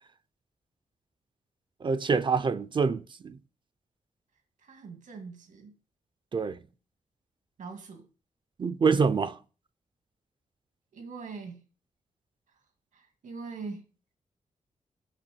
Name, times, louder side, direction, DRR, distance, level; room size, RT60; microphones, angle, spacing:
voice 1, 1.8-3.4 6.3-6.6 8.6-9.4, right 5 dB, 40° right, 0.6 m, -26 dB
voice 2, 4.6-5.7 7.6-8.1 10.9-11.6 12.9-13.8, right 4 dB, 85° right, 2.2 m, -42 dB
9.0 x 5.5 x 6.8 m
wide cardioid pair, 115°, 13 cm